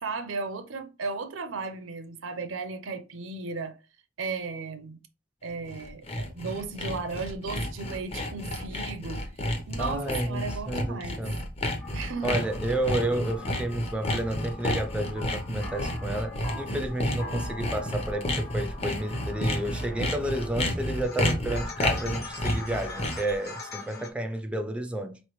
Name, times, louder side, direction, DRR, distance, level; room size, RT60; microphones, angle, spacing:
voice 1, 0.0-3.8 4.2-5.0 5.4-11.2 11.9-12.4, right 4 dB, 80° right, 0.6 m, -35 dB
Sawing, 5.5-23.3, left 1 dB, 30° left, 0.7 m, -31 dB
voice 2, 9.8-11.4 12.2-25.2, right 1 dB, 5° right, 0.4 m, -31 dB
sound 1, 11.8-24.1, left 2 dB, 50° left, 1.2 m, -42 dB
4.4 x 3.1 x 3.1 m
head